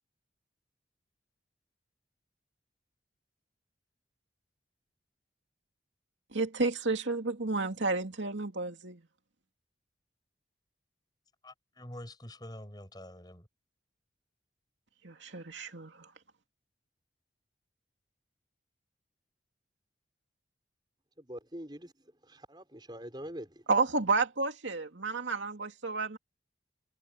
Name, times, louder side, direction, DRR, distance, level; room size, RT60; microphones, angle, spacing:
voice 1, 6.3-9.0 15.0-16.1 23.7-26.2, right 3 dB, 90° right, 2.6 m, -31 dB
voice 2, 11.4-13.5, left 1 dB, 20° left, 6.5 m, -46 dB
voice 3, 21.2-23.7, equal, 25° right, 6.6 m, -45 dB
head